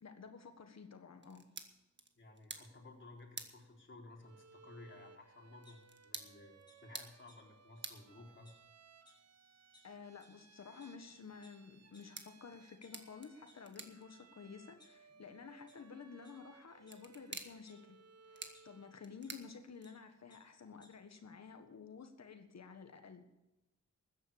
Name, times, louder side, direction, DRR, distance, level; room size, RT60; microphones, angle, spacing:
voice 1, 0.0-1.4 9.8-18.0 18.3-23.2, left 5 dB, 60° left, 7 dB, 1.6 m, -52 dB
sound 1, 1.2-20.2, right 4 dB, 40° right, 1.7 m, -55 dB
voice 2, 2.2-6.5 6.8-8.5, left 2 dB, 40° left, -1 dB, 4.0 m, -56 dB
Bowed string instrument, 4.2-19.1, right 5 dB, 60° right, 1.3 m, -63 dB
sound 2, 5.6-6.2 6.7-6.8 7.3-7.4 7.9-8.0 8.3-8.6 9.1-9.2 9.7-9.8 10.2-10.3 10.8-10.9 11.4-11.5 11.9-12.0 12.6-13.5 14.1-14.2 14.5-15.3 15.7-15.8 16.2-16.3 16.9-17.7 18.5-18.6 19.2-19.3 19.6-19.9 20.3-20.4 20.7-20.9, left 1 dB, 15° left, 6.4 m, -65 dB
13.5 x 9.8 x 6.7 m, 0.97 s
cardioid pair, 65°, 30 cm